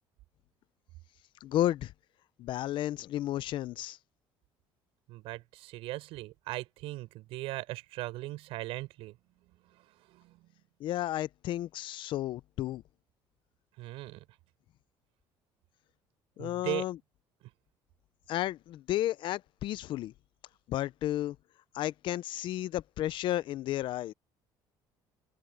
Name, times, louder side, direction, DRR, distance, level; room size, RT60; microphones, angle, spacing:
voice 1, 1.4-1.9 2.4-4.0 10.8-12.8 16.4-17.0 18.3-20.1 20.7-21.4 21.7-24.1, left 14 dB, 60° left, 0.6 m, -32 dB
voice 2, 5.1-9.2 9.7-10.4 13.8-14.2 16.4-16.9, right 18 dB, 80° right, 6.8 m, -39 dB
cardioid pair, 130°, 10 cm